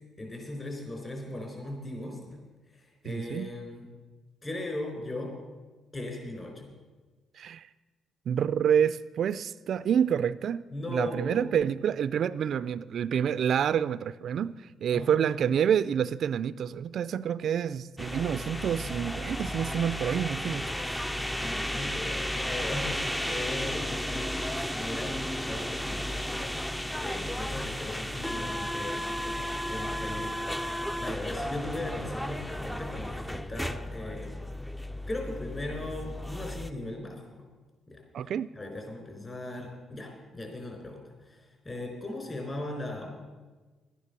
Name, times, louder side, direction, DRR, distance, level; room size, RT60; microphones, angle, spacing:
voice 1, 0.2-2.4 2.7-3.9 4.4-5.3 5.9-6.7 10.7-11.5 14.9-15.2 20.6-34.4 35.1-37.4 37.9-38.0 38.5-43.1, left 2 dB, 30° left, 4.4 m, -38 dB
voice 2, 3.0-3.5 7.4-7.7 8.3-10.6 10.9-20.7 38.1-38.5, right 8 dB, 65° right, 0.3 m, -28 dB
sound 1, 18.0-36.7, equal, 5° left, 0.5 m, -34 dB
12.0 x 9.7 x 6.8 m
cardioid pair, 90°, 0 cm